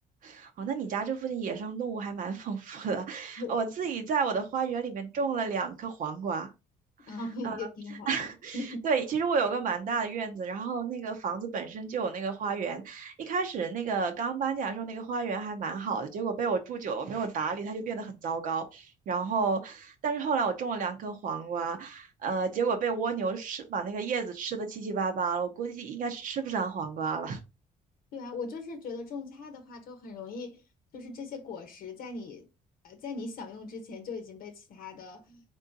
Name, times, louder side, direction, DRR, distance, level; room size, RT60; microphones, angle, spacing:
voice 1, 0.2-6.5 7.4-7.6 8.1-27.4, right 5 dB, 60° right, 0.7 m, -31 dB
voice 2, 7.1-8.3 8.5-8.9 28.1-30.6 30.9-32.5 32.8-35.4, left 3 dB, 70° left, 0.9 m, -39 dB
3.8 x 3.5 x 2.7 m
cardioid pair, 135°, 16 cm